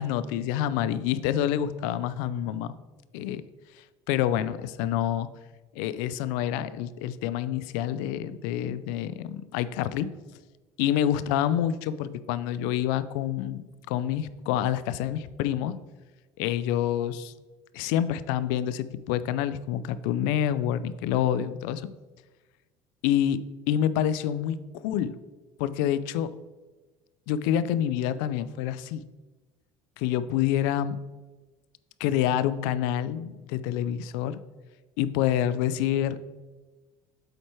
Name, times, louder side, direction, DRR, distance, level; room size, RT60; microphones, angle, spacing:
voice 1, 0.0-2.7 3.1-3.4 3.8-5.3 5.7-10.1 10.8-13.6 13.9-15.7 16.4-17.3 17.7-21.8 23.0-25.2 25.6-26.3 27.3-29.0 30.0-31.0 32.0-34.4 35.0-36.2, left 10 dB, 90° left, 15 dB, 0.4 m, -27 dB
7.9 x 4.4 x 4.5 m, 1.2 s
cardioid pair, 115°, 11 cm